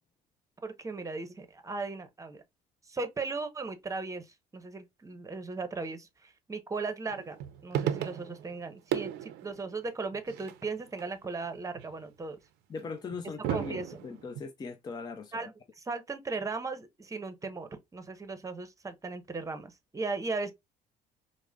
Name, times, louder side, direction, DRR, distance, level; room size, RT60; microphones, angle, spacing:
voice 1, 0.6-2.4 2.9-7.4 7.6-12.4 13.5-14.0 15.3-20.5, right 3 dB, 20° right, 0.7 m, -37 dB
sound 1, 7.1-8.6 8.9-11.0 11.4-12.0 12.8-14.4, right 10 dB, 90° right, 0.5 m, -35 dB
voice 2, 12.7-15.5, left 4 dB, 25° left, 0.4 m, -40 dB
4.8 x 2.1 x 2.2 m
cardioid pair, 110°, 17 cm